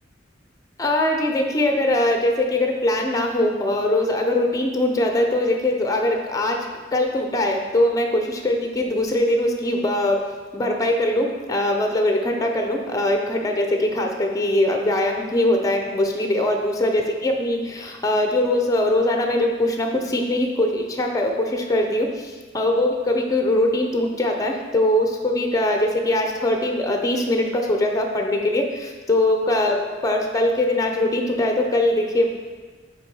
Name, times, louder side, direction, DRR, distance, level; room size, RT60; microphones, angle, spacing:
voice 1, 0.8-6.6 6.9-32.3, left 1 dB, 20° left, 3 dB, 0.6 m, -22 dB
5.8 x 4.2 x 4.6 m, 1.4 s
head